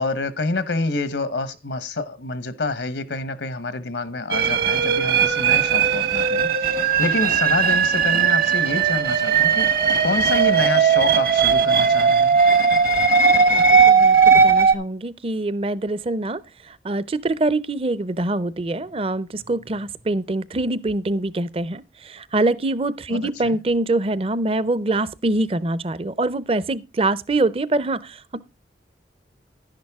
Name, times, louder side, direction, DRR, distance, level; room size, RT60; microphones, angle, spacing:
voice 1, 0.0-6.5 7.0-9.7 10.0-12.4 23.1-23.6, left 3 dB, 85° left, 1.0 m, -27 dB
sound 1, 4.3-14.7, right 6 dB, 55° right, 1.0 m, -17 dB
voice 2, 13.4-16.4 16.7-28.4, right 2 dB, 30° right, 0.5 m, -24 dB
11.0 x 10.5 x 3.5 m
head